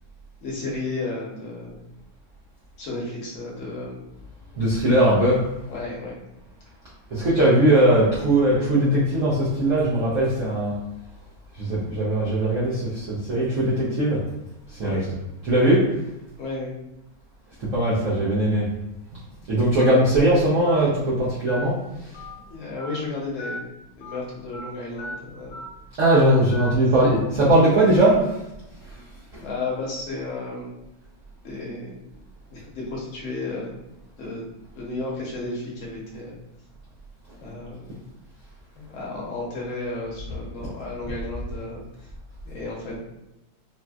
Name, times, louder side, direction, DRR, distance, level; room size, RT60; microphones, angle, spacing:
voice 1, 0.4-1.8 2.8-4.0 5.7-6.2 14.8-15.1 16.4-16.7 22.5-23.7 24.0-25.6 29.4-30.7 31.4-32.0 32.5-33.7 34.2-34.5 34.7-36.4 37.4-38.1 38.7-42.1 42.4-42.9, left 2 dB, 50° left, -4 dB, 1.0 m, -33 dB
voice 2, 4.6-5.5 7.1-10.8 11.5-14.3 14.7-15.0 15.4-15.9 17.6-18.7 19.5-22.1 26.0-28.3 28.8-29.0 29.3-29.4, right 1 dB, 80° right, -8 dB, 0.6 m, -20 dB
Telephone, 19.8-19.9 20.7-20.8 21.5-21.6 22.1-22.4 22.8-23.0 23.4-23.6 24.0-24.2 24.5-24.7 25.0-25.2 25.5-25.7 26.0-26.2 26.5-26.7, left 1 dB, 70° left, 1.2 m, -36 dB
4.2 x 2.1 x 2.3 m, 0.93 s
omnidirectional pair, 2.2 m